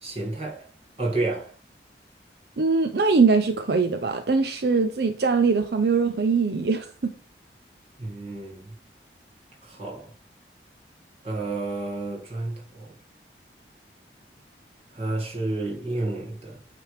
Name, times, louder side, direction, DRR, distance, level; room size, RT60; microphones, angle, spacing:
voice 1, 0.0-0.7 1.0-1.5 8.0-8.7 9.6-10.1 11.2-12.9 14.9-16.6, right 2 dB, 35° right, 1.9 m, -30 dB
voice 2, 2.6-7.1, right 4 dB, 65° right, 0.6 m, -22 dB
8.8 x 3.4 x 4.8 m
head